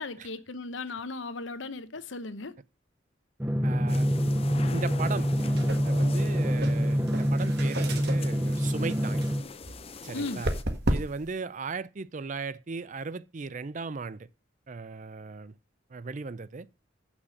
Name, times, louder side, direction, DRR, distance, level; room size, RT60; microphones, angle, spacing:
voice 1, 0.0-2.5 10.1-10.5, left 3 dB, 80° left, 0.9 m, -36 dB
Drum, 3.4-9.4, equal, 10° right, 0.7 m, -26 dB
voice 2, 3.6-4.1 4.7-5.3 5.8-9.2 10.0-10.5 10.9-14.3 14.7-15.5 15.9-16.7, right 4 dB, 40° right, 0.5 m, -37 dB
sound 1, 3.9-10.6, left 4 dB, 30° left, 0.6 m, -43 dB
sound 2, 5.2-11.3, right 1 dB, 60° right, 1.5 m, -35 dB
8.0 x 6.2 x 6.3 m
head